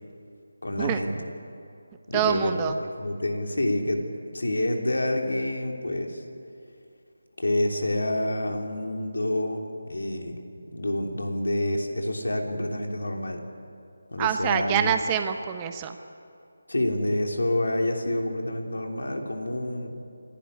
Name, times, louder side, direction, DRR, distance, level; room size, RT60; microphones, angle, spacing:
voice 1, 0.6-1.2 2.1-2.7 3.0-6.2 7.4-10.4 10.7-13.4 14.1-14.9 16.7-19.9, left 1 dB, 85° left, 2 dB, 3.2 m, -28 dB
voice 2, 2.1-2.8 14.2-16.0, right 9 dB, 15° right, 7 dB, 1.0 m, -26 dB
27.0 x 12.0 x 9.8 m, 2.5 s
figure-of-eight pair, 165°, 0 cm